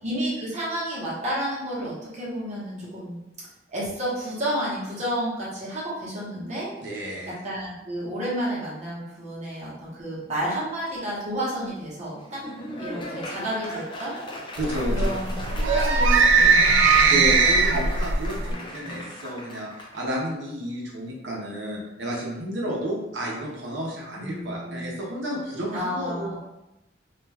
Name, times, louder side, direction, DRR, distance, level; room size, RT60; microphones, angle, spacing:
voice 1, 0.0-3.2 3.7-6.7 7.3-12.4 12.8-14.1 14.9-17.3 18.4-19.0 24.2-24.9 25.7-26.4, equal, 40° right, -6 dB, 0.9 m, -31 dB
voice 2, 6.8-7.3 14.6-15.1 17.1-26.4, equal, 65° right, -3 dB, 0.8 m, -31 dB
Laughter / Applause, 12.1-20.0, left 1 dB, 25° left, 0.4 m, -38 dB
sound 1, 14.6-18.5, right 4 dB, 85° right, 0.4 m, -19 dB
2.4 x 2.2 x 3.3 m, 0.92 s
head